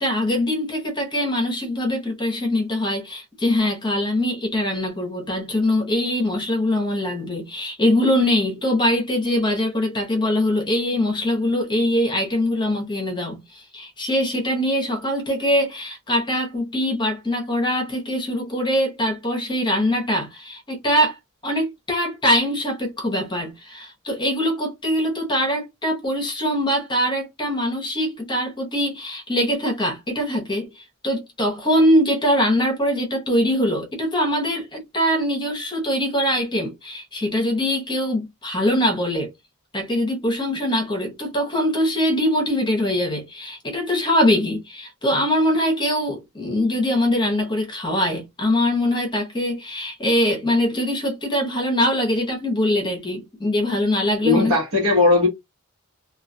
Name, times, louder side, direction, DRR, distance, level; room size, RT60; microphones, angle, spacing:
voice 1, 0.0-21.2 21.4-39.3 39.7-54.5, left 1 dB, 20° left, 0.8 m, -22 dB
voice 2, 54.2-55.3, left 3 dB, 65° right, 1.0 m, -17 dB
2.3 x 2.3 x 2.5 m
head